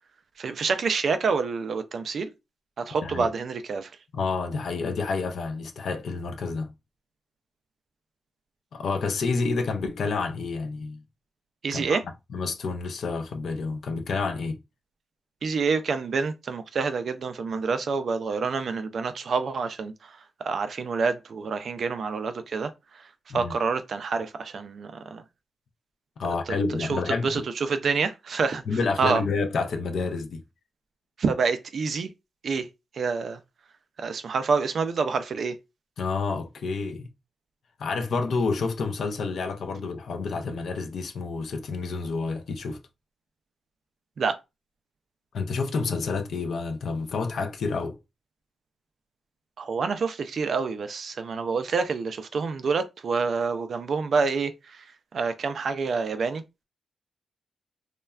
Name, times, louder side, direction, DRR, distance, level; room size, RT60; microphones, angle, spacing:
voice 1, 0.4-2.3 2.8-3.9 11.6-12.0 15.4-19.9 20.4-22.7 23.3-25.2 26.5-28.6 29.0-29.2 31.2-32.1 32.4-32.7 32.9-33.4 34.0-35.6 44.2-44.4 49.6-54.8 55.1-56.4, right 5 dB, 50° right, 0.3 m, -27 dB
voice 2, 3.0-3.3 4.1-6.7 8.7-11.0 11.7-12.0 12.3-14.6 23.3-23.5 26.2-27.4 28.7-30.4 36.0-37.1 37.8-42.8 45.3-48.0, left 4 dB, 60° left, 0.5 m, -29 dB
3.2 x 2.1 x 2.3 m
wide cardioid pair, 170°, 0 cm